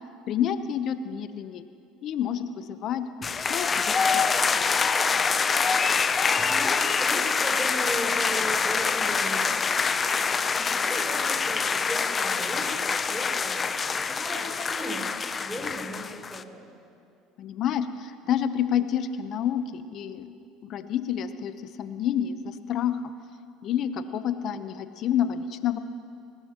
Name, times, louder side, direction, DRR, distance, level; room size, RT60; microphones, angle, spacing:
voice 1, 0.3-1.6 2.0-4.8 17.4-20.3 20.6-21.5 21.8-23.0 23.6-25.8, left 9 dB, 55° left, 11 dB, 0.9 m, -29 dB
sound 1, 3.2-16.4, left 5 dB, 30° left, 0.6 m, -25 dB
voice 2, 6.4-9.8 10.5-13.6 14.1-16.7, equal, 5° right, -6 dB, 3.8 m, -37 dB
20.5 x 18.5 x 3.0 m, 2.4 s
hypercardioid pair, 80°, 0 cm